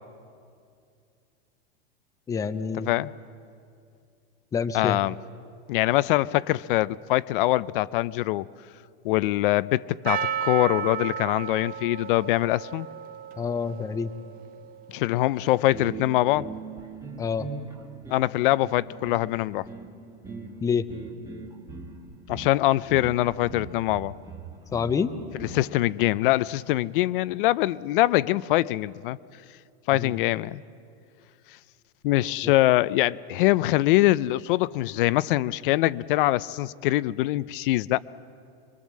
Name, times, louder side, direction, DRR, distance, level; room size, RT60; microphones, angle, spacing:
voice 1, 2.3-2.9 4.5-5.0 13.4-14.1 17.2-17.5 20.6-20.9 24.7-25.1 29.9-30.1, left 6 dB, 10° left, 0.6 m, -27 dB
voice 2, 4.7-5.2 5.7-8.5 9.0-12.9 14.9-16.5 18.1-19.7 22.3-24.1 25.3-29.2 29.9-30.6 32.0-38.0, left 17 dB, 55° left, 0.5 m, -23 dB
Percussion, 10.1-15.0, right 8 dB, 25° right, 0.9 m, -34 dB
sound 1, 15.6-25.8, right 4 dB, 10° right, 1.4 m, -41 dB
24.5 x 22.5 x 7.4 m
supercardioid pair, 145°, 32 cm